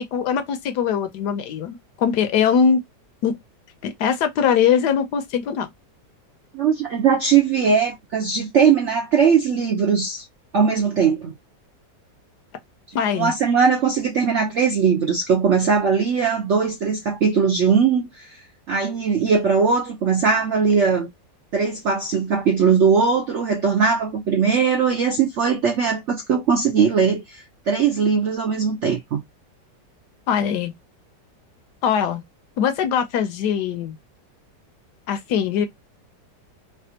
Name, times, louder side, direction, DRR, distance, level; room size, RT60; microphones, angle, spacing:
voice 1, 0.0-2.8 3.2-3.4 3.8-5.7 12.9-13.3 30.3-30.7 31.8-32.2 32.6-34.0 35.1-35.7, left 7 dB, 70° left, 1.1 m, -21 dB
voice 2, 6.5-10.3 10.5-11.3 13.1-18.4 18.7-21.1 21.5-29.2, right 6 dB, 70° right, 0.6 m, -20 dB
3.3 x 2.4 x 2.7 m
omnidirectional pair, 1.9 m